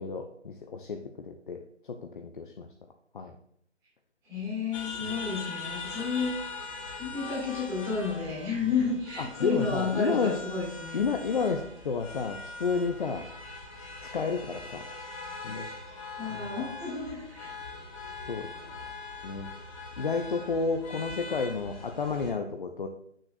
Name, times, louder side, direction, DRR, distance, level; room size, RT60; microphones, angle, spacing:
voice 1, 0.0-1.6 1.9-2.7 3.1-3.3 5.0-5.2 9.4-10.4 10.9-13.3 14.1-14.8 15.4-15.7 16.3-16.6 18.3-18.5 19.2-19.5 20.0-22.9, left 5 dB, 45° left, 5 dB, 0.5 m, -31 dB
voice 2, 4.2-11.1 15.9-17.5, left 4 dB, 10° right, -9 dB, 2.2 m, -32 dB
sound 1, 4.7-22.3, left 3 dB, 30° left, 1.4 m, -41 dB
7.8 x 6.3 x 2.5 m, 0.69 s
figure-of-eight pair, 145°, 35 cm